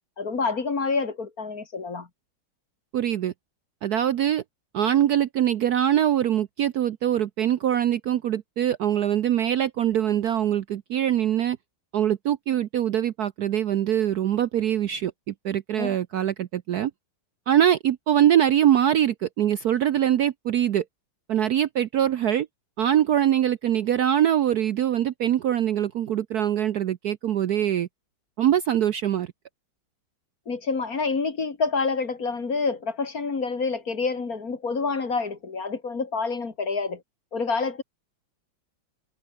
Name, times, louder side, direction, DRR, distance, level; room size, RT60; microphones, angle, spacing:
voice 1, 0.2-2.1 15.8-16.0 30.5-37.0 37.3-37.8, left 4 dB, 45° left, 2.8 m, -27 dB
voice 2, 2.9-3.3 3.8-4.4 4.7-11.6 11.9-16.9 17.5-20.8 21.3-22.5 22.8-27.9 28.4-29.3, right 10 dB, 65° right, 1.1 m, -23 dB
omnidirectional pair, 2.2 m